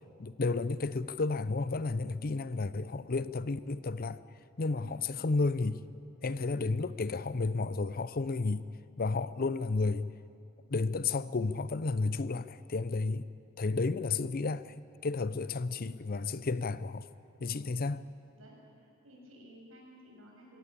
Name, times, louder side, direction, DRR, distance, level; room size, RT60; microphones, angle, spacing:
voice 1, 0.2-4.2 4.6-5.8 6.2-8.6 9.0-10.1 10.7-13.2 13.6-14.7 15.0-17.1 17.4-18.0, left 3 dB, 45° left, 0.6 m, -32 dB
voice 2, 15.1-15.6 17.4-17.7 18.4-20.6, equal, 90° right, 6.8 m, -56 dB
22.5 x 17.0 x 8.6 m
head